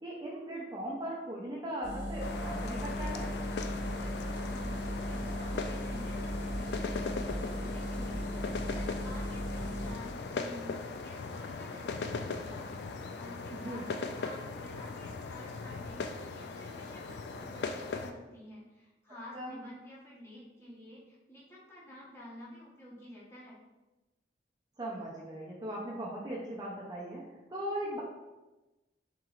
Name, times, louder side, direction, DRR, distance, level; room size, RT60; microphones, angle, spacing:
voice 1, 0.0-3.2 13.5-13.9 19.3-19.5 24.8-27.2 27.5-28.0, right 1 dB, 25° right, -4 dB, 0.5 m, -38 dB
sound 1, 1.8-9.9, equal, 90° right, 1.0 m, -37 dB
sound 2, 2.2-18.1, left 4 dB, 65° left, 0.3 m, -39 dB
voice 2, 3.9-6.9 7.4-23.6, equal, 15° left, -7 dB, 1.1 m, -51 dB
5.8 x 3.0 x 2.4 m, 1.1 s
head